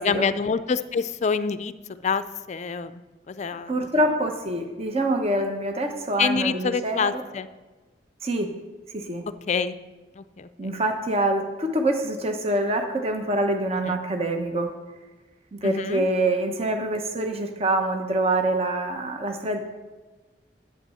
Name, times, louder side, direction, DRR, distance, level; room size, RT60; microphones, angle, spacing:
voice 1, 0.0-1.7 2.0-3.0 3.3-3.7 6.2-7.5 9.5-9.7 10.2-10.7 13.8-14.0 15.6-16.1, left 5 dB, 40° left, 12 dB, 0.4 m, -26 dB
voice 2, 3.7-7.2 8.2-8.5 8.9-9.3 10.6-14.7 15.5-19.6, right 1 dB, 35° right, 4 dB, 1.0 m, -25 dB
11.0 x 8.7 x 5.6 m, 1.2 s
head